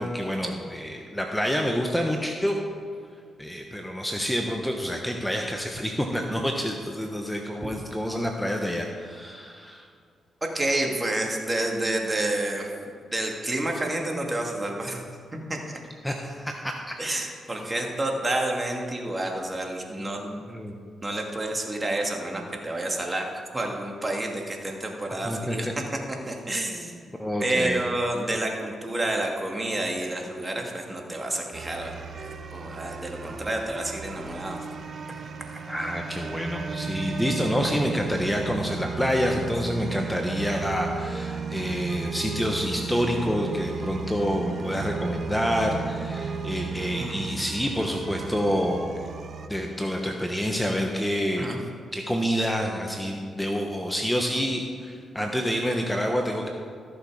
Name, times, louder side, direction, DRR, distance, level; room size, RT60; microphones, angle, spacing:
voice 1, 0.0-2.6 3.4-9.9 16.0-16.9 20.5-20.7 25.2-25.6 27.2-27.8 35.7-49.1 49.5-51.5 51.9-56.5, equal, 5° left, 2 dB, 1.1 m, -28 dB
voice 2, 10.4-12.7 13.1-15.0 15.3-15.8 17.0-20.4 21.0-23.3 23.5-25.7 26.3-26.9 27.4-34.6 35.5-35.6 47.0-47.1 51.4-51.6, right 1 dB, 25° right, 1 dB, 2.1 m, -29 dB
sound 1, 31.5-49.5, right 5 dB, 60° right, 0.7 m, -34 dB
14.0 x 6.9 x 4.9 m, 2.2 s
supercardioid pair, 55°, 0 cm